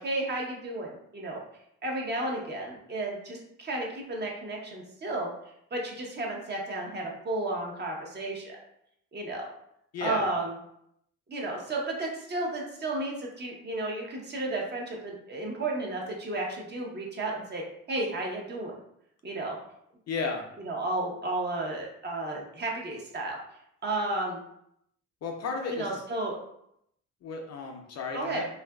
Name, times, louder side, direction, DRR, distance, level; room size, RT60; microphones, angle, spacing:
voice 1, 0.0-1.4 1.8-5.3 5.7-8.6 9.1-9.4 10.0-10.5 11.3-17.6 17.9-18.7 19.2-19.6 20.6-23.4 23.8-24.4 25.7-26.4 28.1-28.4, right 2 dB, 35° right, -1 dB, 0.7 m, -33 dB
voice 2, 9.9-10.3 20.1-20.5 25.2-26.0 27.2-28.5, left 4 dB, 55° left, 2 dB, 0.5 m, -33 dB
2.7 x 2.4 x 2.2 m, 0.75 s
cardioid pair, 90°, 30 cm